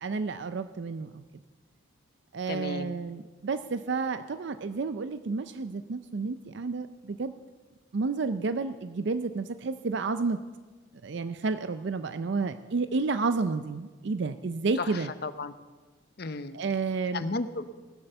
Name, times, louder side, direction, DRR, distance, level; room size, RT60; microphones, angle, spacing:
voice 1, 0.0-1.2 2.3-7.3 7.9-10.4 11.0-15.1 16.5-17.2, right 4 dB, 60° right, 10 dB, 0.5 m, -31 dB
voice 2, 2.5-2.9 14.8-15.5 16.2-16.6 17.1-17.7, left 3 dB, 50° left, 11 dB, 0.7 m, -34 dB
19.0 x 7.8 x 6.8 m, 1.4 s
head